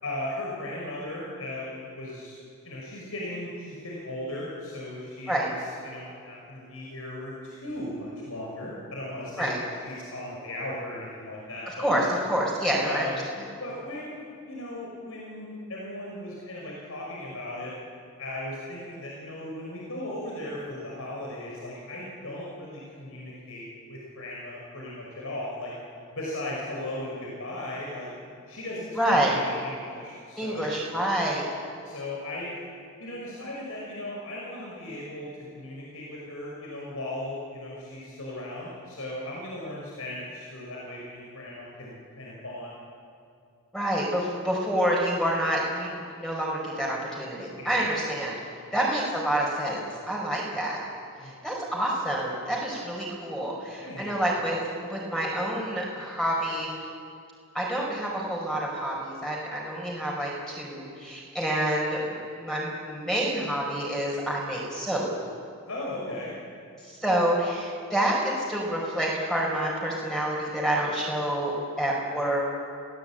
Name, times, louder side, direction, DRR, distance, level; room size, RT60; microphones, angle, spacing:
voice 1, 0.0-2.4 2.6-11.9 12.8-13.2 13.6-17.7 18.2-25.7 26.1-28.1 28.5-30.8 31.8-32.6 33.0-42.8 47.6-48.2 48.7-48.9 51.2-51.4 53.8-54.1 65.7-66.3, left 1 dB, 80° left, -4 dB, 6.0 m, -37 dB
voice 2, 11.8-13.1 29.0-29.3 30.4-31.4 43.7-48.4 48.7-49.8 50.1-50.8 51.4-56.7 57.5-65.1 66.9-72.4, right 1 dB, 5° left, -4 dB, 4.8 m, -28 dB
29.0 x 18.0 x 9.0 m, 2.4 s
head